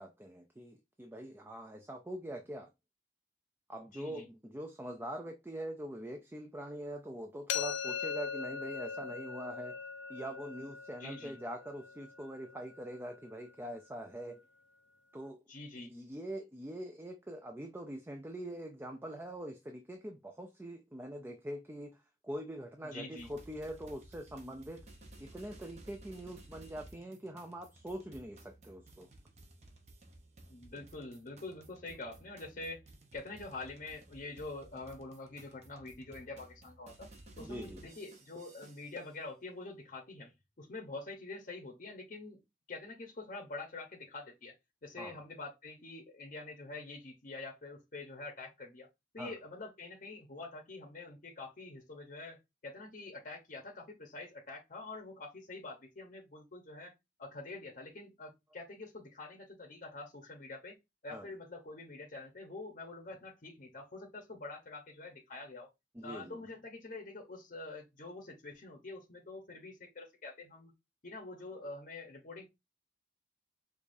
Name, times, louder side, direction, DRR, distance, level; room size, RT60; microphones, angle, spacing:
voice 1, 0.0-2.7 3.7-9.8 10.1-14.4 15.1-15.4 15.8-24.8 25.2-29.1 37.4-37.8 45.0-45.2 49.2-49.3 61.1-61.3 65.9-66.4, right 1 dB, 10° right, 0.4 m, -43 dB
voice 2, 3.9-4.3 11.0-11.4 15.5-15.9 22.8-23.3 30.5-32.8 33.1-37.1 37.4-42.4 42.7-44.5 44.8-48.9 49.1-56.9 57.2-60.8 61.0-65.7 66.0-70.7 71.0-72.5, left 3 dB, 45° left, 0.7 m, -46 dB
sound 1, 7.5-13.3, left 6 dB, 80° left, 0.5 m, -40 dB
sound 2, 23.2-39.1, right 1 dB, 40° right, 0.7 m, -56 dB
4.8 x 2.4 x 2.5 m
head